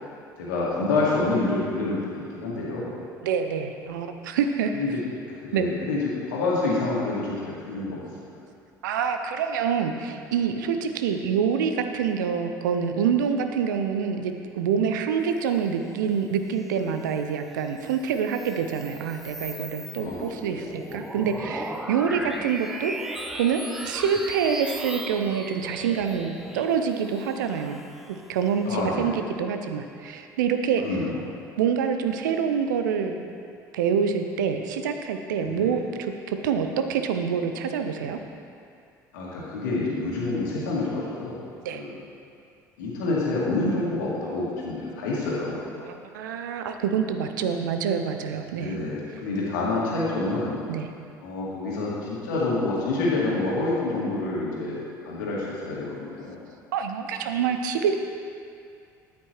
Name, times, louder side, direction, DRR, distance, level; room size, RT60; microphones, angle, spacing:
voice 1, 0.4-2.9 4.7-5.0 5.3-8.1 20.0-20.4 22.1-22.2 28.6-29.3 30.8-31.2 35.4-35.8 39.1-41.5 41.7-42.0 42.8-45.6 48.6-50.6 51.2-56.4, left 2 dB, 70° left, -5 dB, 2.2 m, -28 dB
voice 2, 3.2-4.7 5.5-5.7 8.8-22.9 23.3-27.8 28.1-30.8 31.6-33.2 33.7-38.2 41.6-41.8 45.8-48.7 50.7-50.9 56.7-57.9, right 7 dB, 70° right, 6 dB, 0.6 m, -26 dB
sound 1, 17.6-28.5, right 1 dB, 5° right, 0.8 m, -37 dB
13.0 x 8.4 x 3.1 m, 2.4 s
figure-of-eight pair, 60°, 11 cm